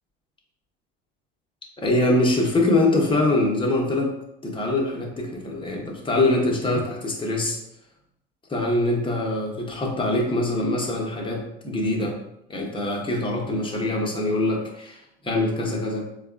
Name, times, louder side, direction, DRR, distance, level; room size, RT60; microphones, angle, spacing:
voice 1, 1.8-4.1 4.4-7.6 8.5-12.2 12.5-16.0, left 2 dB, 15° left, -1 dB, 0.9 m, -23 dB
4.6 x 2.3 x 2.4 m, 0.81 s
hypercardioid pair, 75°, 29 cm